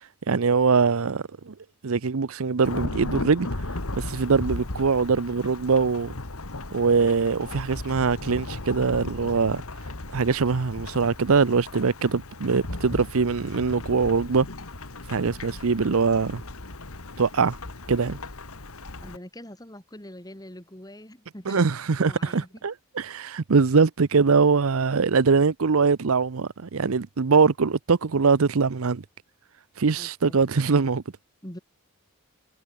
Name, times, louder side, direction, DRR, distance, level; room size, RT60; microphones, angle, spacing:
voice 1, 0.3-1.5 1.8-3.5 3.9-6.1 6.7-9.6 10.1-14.5 15.1-16.4 17.2-17.5 17.9-18.2 21.5-29.0 29.8-31.0, right 5 dB, 75° right, 0.7 m, -22 dB
Thunderstorm / Rain, 2.6-19.2, left 2 dB, 75° left, 2.1 m, -36 dB
voice 2, 19.0-22.6 29.9-30.5 31.4-31.6, left 1 dB, 15° left, 2.9 m, -44 dB
head